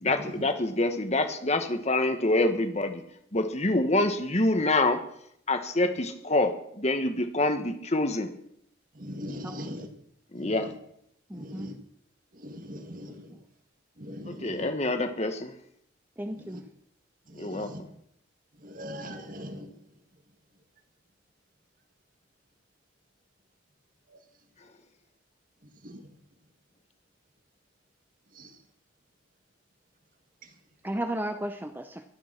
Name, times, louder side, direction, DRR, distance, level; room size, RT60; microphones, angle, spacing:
voice 1, 0.0-3.0 3.3-5.0 5.5-8.3 10.3-10.7 14.3-15.5 17.4-17.7, left 2 dB, 35° left, 7 dB, 1.3 m, -26 dB
voice 2, 9.0-9.9 10.4-10.6 11.3-11.7 12.4-13.3 14.0-14.7 16.5-16.6 17.4-17.8 18.6-19.7 25.8-26.0, equal, 45° right, 6 dB, 2.1 m, -40 dB
voice 3, 11.3-11.7 16.2-16.6 30.8-32.0, right 1 dB, 10° right, 7 dB, 0.7 m, -34 dB
23.0 x 9.4 x 6.0 m, 0.72 s
head